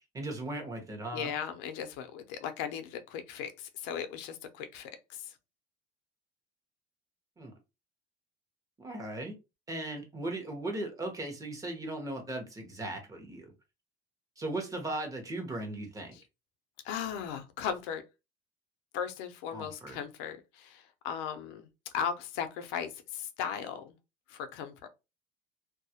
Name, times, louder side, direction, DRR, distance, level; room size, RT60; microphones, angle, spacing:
voice 1, 0.1-1.3 7.4-7.5 8.8-9.3 9.7-13.5 14.4-16.1 19.5-20.0, right 2 dB, 15° right, 0.7 m, -37 dB
voice 2, 1.1-5.3 16.1-16.2 16.8-18.0 18.9-21.7 21.9-24.0 24.3-24.9, left 8 dB, 85° left, 0.5 m, -37 dB
2.2 x 2.0 x 2.7 m
cardioid pair, 140°, 20 cm